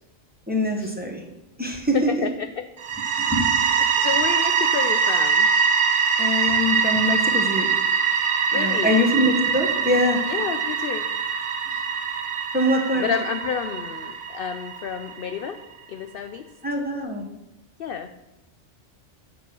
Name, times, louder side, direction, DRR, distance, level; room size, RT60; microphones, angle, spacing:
voice 1, 0.5-1.2 1.6-2.3 3.2-3.5 4.0-4.1 6.2-7.8 8.5-10.4 12.5-13.1 16.6-17.2, left 1 dB, 10° right, 1 dB, 1.3 m, -24 dB
voice 2, 1.9-2.7 4.0-5.5 8.5-9.0 10.3-11.1 11.7-11.9 12.9-15.6 15.9-16.5 17.8-18.1, left 7 dB, 60° left, 8 dB, 0.6 m, -30 dB
sound 1, 2.8-15.5, right 6 dB, 75° right, 1.2 m, -23 dB
8.2 x 6.5 x 6.1 m, 0.91 s
omnidirectional pair, 1.3 m